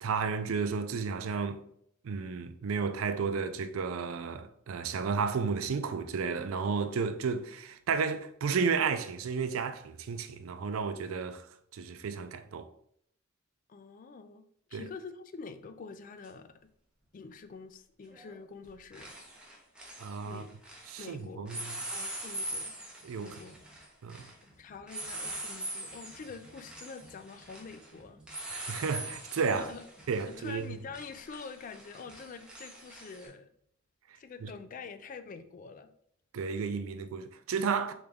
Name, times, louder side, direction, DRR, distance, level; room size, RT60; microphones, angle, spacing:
voice 1, 0.0-1.6 2.0-11.5 11.7-12.7 14.7-14.9 20.0-20.4 20.9-21.8 23.0-23.4 24.0-24.3 28.5-29.7 30.1-30.8 34.4-34.5 36.3-37.9, right 5 dB, 80° right, 0.4 m, -32 dB
voice 2, 13.7-14.4 14.7-16.7 17.1-19.1 20.2-20.5 21.0-21.6 21.9-22.7 23.2-23.6 24.6-28.2 29.5-29.8 30.3-33.5 34.1-35.9, left 4 dB, 40° left, 0.3 m, -46 dB
sound 1, 16.2-16.3 18.1-18.4 18.6-21.1 21.5-33.3, right 1 dB, 5° right, 0.8 m, -43 dB
3.9 x 3.4 x 3.5 m
head